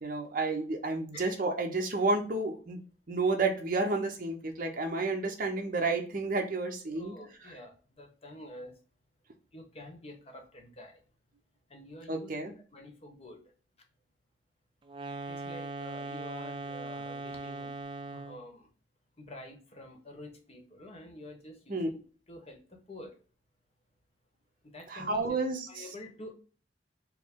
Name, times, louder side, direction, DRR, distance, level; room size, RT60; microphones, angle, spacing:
voice 1, 0.0-2.8 3.1-7.1 12.1-12.5 21.7-21.9 24.9-25.9, right 3 dB, 50° right, 3 dB, 0.8 m, -31 dB
voice 2, 6.9-8.7 9.5-11.0 11.7-13.4 15.3-17.7 18.1-18.7 19.2-22.0 22.3-23.2 24.6-25.4 25.7-26.3, left 1 dB, 35° left, 3 dB, 0.9 m, -48 dB
sound 1, 14.9-18.5, right 2 dB, 25° right, 0.4 m, -39 dB
4.7 x 2.1 x 3.6 m, 0.38 s
head